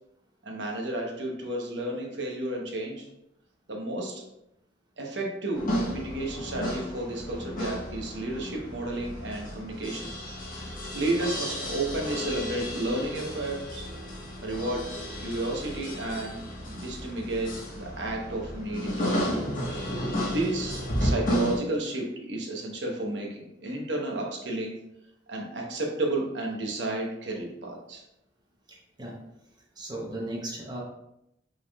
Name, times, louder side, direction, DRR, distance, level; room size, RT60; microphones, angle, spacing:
voice 1, 0.4-3.1 3.7-4.2 5.0-10.1 10.5-10.7 10.9-13.9 14.4-14.9 15.2-16.4 16.7-19.4 19.7-19.9 20.1-24.7 25.3-28.0, right 2 dB, 65° right, 0 dB, 1.0 m, -32 dB
sound 1, 5.5-21.6, equal, 50° left, 1.2 m, -33 dB
voice 2, 28.7-29.1 29.8-30.8, right 1 dB, 25° right, -2 dB, 0.8 m, -36 dB
5.4 x 3.6 x 2.3 m, 0.81 s
head